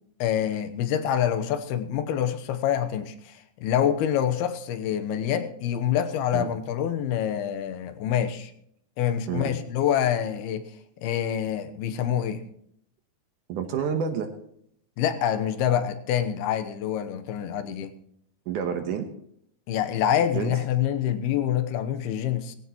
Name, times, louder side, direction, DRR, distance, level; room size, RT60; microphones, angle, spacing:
voice 1, 0.2-8.5 9.0-10.6 11.0-12.4 15.0-17.9 19.7-22.6, left 10 dB, 85° left, 8 dB, 2.9 m, -26 dB
voice 2, 13.5-14.3 18.5-19.1 20.3-20.5, right 7 dB, 70° right, 6 dB, 2.3 m, -28 dB
19.0 x 16.5 x 3.0 m, 0.69 s
omnidirectional pair, 4.4 m